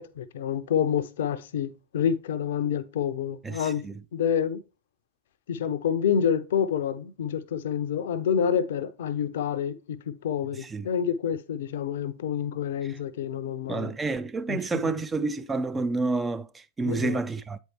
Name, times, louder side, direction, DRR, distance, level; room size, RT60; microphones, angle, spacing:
voice 1, 0.0-3.8 4.1-4.6 5.5-14.0 14.5-15.0 16.8-17.2, left 8 dB, 60° left, 0.5 m, -28 dB
voice 2, 3.4-3.9 10.6-10.9 13.7-17.6, right 3 dB, 15° right, 0.3 m, -29 dB
8.1 x 4.5 x 3.0 m
figure-of-eight pair, 90°, 0 cm